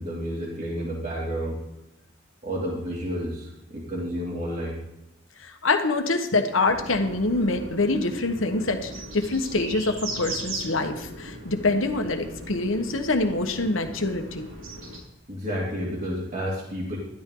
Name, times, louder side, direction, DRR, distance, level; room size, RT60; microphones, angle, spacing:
voice 1, 0.0-1.6 2.4-4.8 15.3-17.0, equal, 40° right, -5 dB, 2.5 m, -30 dB
voice 2, 5.4-14.5, left 2 dB, 90° left, 6 dB, 1.4 m, -25 dB
sound 1, 6.6-15.0, right 1 dB, 85° right, 4.9 m, -38 dB
12.5 x 12.5 x 3.9 m, 0.89 s
head